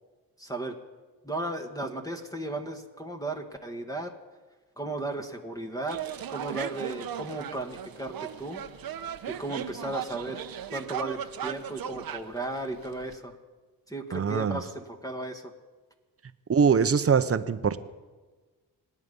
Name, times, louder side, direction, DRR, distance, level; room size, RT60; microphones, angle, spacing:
voice 1, 0.4-0.8 1.2-4.1 4.8-6.0 6.3-8.6 9.3-10.4 10.7-13.4 13.9-15.5, right 2 dB, 10° left, 3 dB, 1.8 m, -35 dB
sound 1, 5.9-13.2, right 9 dB, 60° right, 1.1 m, -37 dB
voice 2, 14.1-14.6 16.5-17.8, right 6 dB, 35° right, 12 dB, 1.0 m, -23 dB
26.5 x 9.7 x 5.5 m, 1.3 s
cardioid pair, 75°, 40 cm